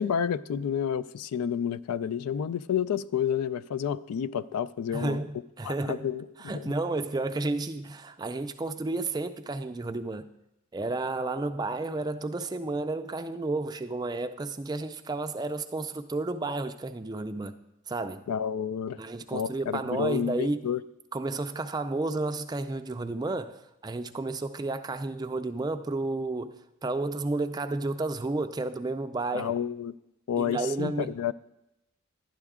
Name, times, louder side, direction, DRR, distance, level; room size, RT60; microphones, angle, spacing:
voice 1, 0.0-5.2 5.6-6.3 6.5-6.7 18.3-19.0 19.3-20.8 29.3-30.0 30.3-31.3, left 8 dB, 90° left, 0.4 m, -30 dB
voice 2, 4.9-6.1 6.4-10.3 10.7-17.5 17.9-18.2 19.0-20.7 21.1-26.5 26.8-29.5 30.4-31.1, right 2 dB, 20° right, 0.3 m, -32 dB
11.5 x 9.8 x 3.6 m
head